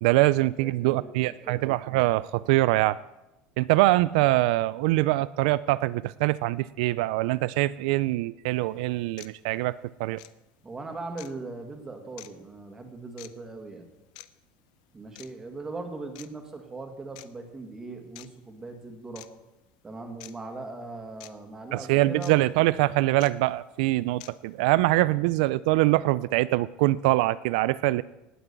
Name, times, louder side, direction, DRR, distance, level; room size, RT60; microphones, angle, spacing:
voice 1, 0.0-3.0 3.6-10.2 21.7-28.0, right 18 dB, 80° right, 17 dB, 0.4 m, -24 dB
voice 2, 0.6-1.6 10.6-13.9 14.9-19.3 19.8-22.6, right 3 dB, 10° right, 4 dB, 1.7 m, -40 dB
sound 1, 8.5-8.6 9.2-9.3 10.1-10.3 11.2-11.3 12.2-12.3 13.2-13.3 14.1-14.3 15.1-15.3 16.1-16.3 17.1-17.3 18.1-18.3 19.1-19.3 20.2-20.3 21.2-21.3 22.2-22.3 23.2-23.3 24.2-24.3, left 17 dB, 80° left, 0.7 m, -45 dB
18.5 x 6.2 x 8.1 m, 0.98 s
cardioid pair, 170°, 4 cm